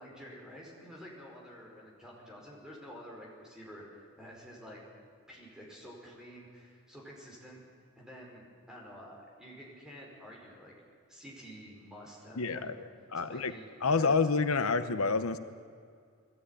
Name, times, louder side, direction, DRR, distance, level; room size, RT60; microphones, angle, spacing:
voice 1, 0.0-4.8 5.3-7.6 8.0-10.7 11.1-12.8 13.2-14.6, equal, 5° right, -3 dB, 5.4 m, -50 dB
voice 2, 12.4-12.7 13.1-13.5 13.8-15.4, left 4 dB, 85° left, 11 dB, 1.0 m, -28 dB
21.5 x 16.0 x 9.9 m, 2.2 s
head